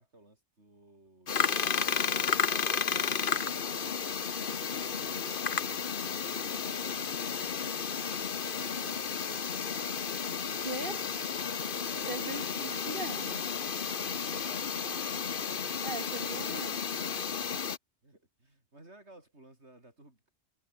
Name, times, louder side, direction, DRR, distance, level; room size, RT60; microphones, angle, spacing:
voice 1, 0.0-3.7 4.4-7.7 8.3-10.0 10.9-11.3 11.8-12.3 14.0-15.0 17.0-17.5 18.0-20.3, right 2 dB, 85° right, 6.2 m, -57 dB
sound 1, 1.3-17.8, left 6 dB, 55° left, 1.2 m, -33 dB
voice 2, 10.6-11.1 12.1-13.5 15.8-16.8, right 2 dB, 50° right, 3.5 m, -39 dB
omnidirectional pair, 1.1 m